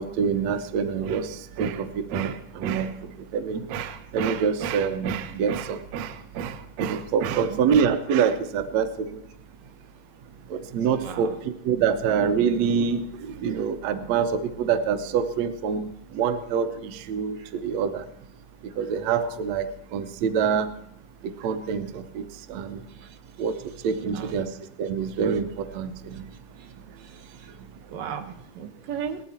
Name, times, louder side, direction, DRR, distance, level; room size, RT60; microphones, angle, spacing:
voice 1, 0.0-2.9 3.3-9.2 10.5-11.3 11.7-14.3 14.6-15.9 16.1-17.4 17.6-18.0 18.8-19.7 19.9-20.7 21.4-22.2 22.5-22.8 23.4-23.5 23.8-24.5 24.8-26.2, right 7 dB, 65° right, 9 dB, 1.9 m, -26 dB
voice 2, 7.2-7.6 10.9-11.4 17.4-17.5 23.0-23.2 23.9-24.4 26.6-26.7 27.0-27.6 27.9-29.2, right 7 dB, 85° right, 5 dB, 2.9 m, -37 dB
18.5 x 14.0 x 4.4 m, 0.75 s
omnidirectional pair, 3.7 m